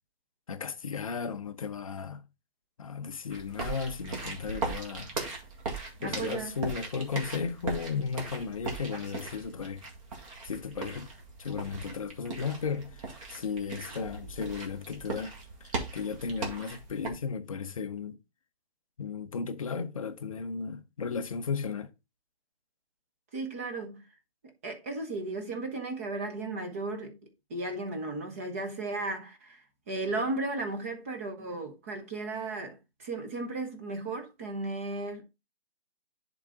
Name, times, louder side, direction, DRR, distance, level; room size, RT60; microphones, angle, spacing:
voice 1, 0.5-2.2 2.8-5.2 6.0-9.8 10.4-11.1 11.4-15.3 15.6-18.2 19.0-21.9, left 5 dB, 35° left, 0.6 m, -35 dB
sound 1, 3.3-17.1, right 3 dB, 35° right, 2.0 m, -39 dB
voice 2, 6.0-6.5 23.3-24.0 24.6-27.2 27.5-35.2, right 2 dB, 15° right, 0.7 m, -35 dB
10.0 x 3.8 x 3.7 m
hypercardioid pair, 160°, 31 cm